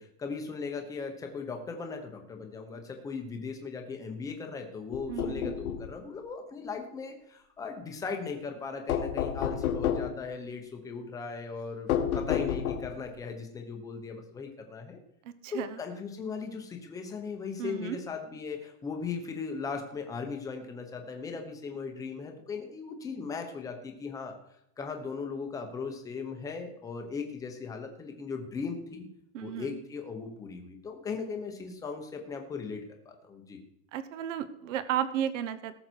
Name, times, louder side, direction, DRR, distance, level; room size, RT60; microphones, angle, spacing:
voice 1, 0.0-11.9 12.1-15.0 15.5-24.4 24.8-29.1 29.4-33.6, left 5 dB, 10° left, 4 dB, 0.9 m, -38 dB
sound 1, 4.9-5.9 8.9-10.2 11.9-13.0, left 9 dB, 75° left, 1.5 m, -30 dB
voice 2, 5.1-5.5 15.2-15.8 17.6-18.0 29.3-29.8 33.9-35.8, right 10 dB, 55° right, 12 dB, 1.0 m, -34 dB
18.0 x 6.6 x 4.5 m, 0.80 s
supercardioid pair, 175°, 44 cm